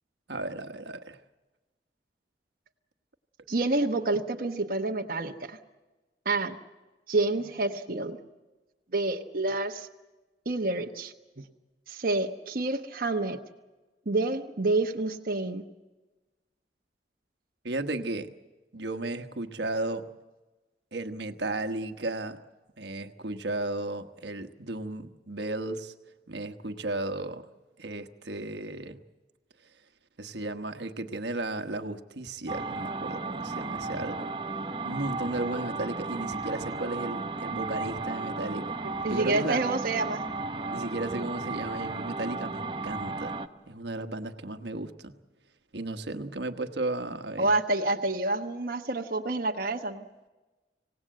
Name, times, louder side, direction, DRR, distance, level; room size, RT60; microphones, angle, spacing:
voice 1, 0.3-1.2 17.6-18.3 18.7-20.1 20.9-22.4 22.8-25.9 26.3-27.5 27.8-29.0 30.2-34.3 34.8-38.8 39.1-39.6 40.7-43.4 43.7-45.1 45.7-47.5, right 2 dB, 70° right, 8 dB, 1.3 m, -34 dB
voice 2, 3.5-5.6 6.2-6.6 7.1-8.2 8.9-9.9 10.4-11.4 11.9-13.4 14.1-15.6 39.0-40.2 47.4-50.0, right 2 dB, 50° right, 3 dB, 1.1 m, -28 dB
sound 1, 32.5-43.5, right 3 dB, 30° right, 0.9 m, -34 dB
26.5 x 18.0 x 7.7 m, 1.2 s
head